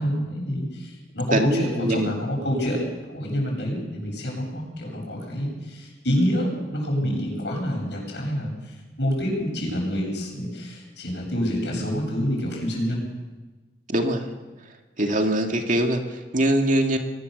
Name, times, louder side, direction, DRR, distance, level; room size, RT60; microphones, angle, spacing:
voice 1, 0.0-2.9 3.1-8.5 9.0-13.1, equal, 75° left, 0 dB, 7.9 m, -27 dB
voice 2, 1.3-2.1 7.0-7.2 11.8-12.0 13.9-14.3 15.0-17.0, right 1 dB, 50° right, 3 dB, 2.3 m, -23 dB
22.5 x 19.0 x 6.8 m, 1.2 s
head